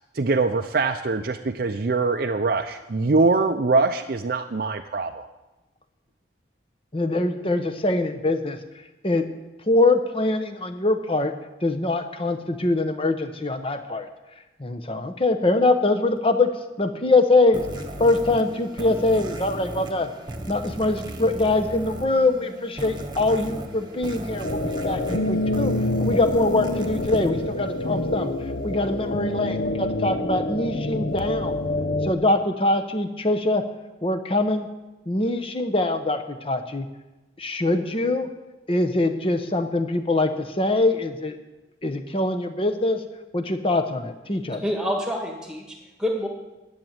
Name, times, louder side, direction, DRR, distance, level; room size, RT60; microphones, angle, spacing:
voice 1, 0.1-5.3, right 3 dB, 50° right, 5 dB, 0.5 m, -23 dB
voice 2, 6.9-8.6 9.0-9.2 9.7-11.3 11.6-14.1 14.6-16.5 16.8-17.6 18.0-20.1 20.5-25.7 26.0-28.3 28.6-31.5 32.0-33.6 34.0-34.7 35.1-36.9 37.4-38.3 38.7-41.4 41.8-43.0 43.3-44.6, left 2 dB, 30° left, 8 dB, 0.9 m, -23 dB
sound 1, 17.5-28.3, right 1 dB, 25° right, 1.1 m, -36 dB
sound 2, 24.4-32.1, left 1 dB, 65° left, 0.7 m, -27 dB
voice 3, 44.5-46.3, equal, 5° right, 1 dB, 1.8 m, -28 dB
11.0 x 7.3 x 8.9 m, 1.1 s
head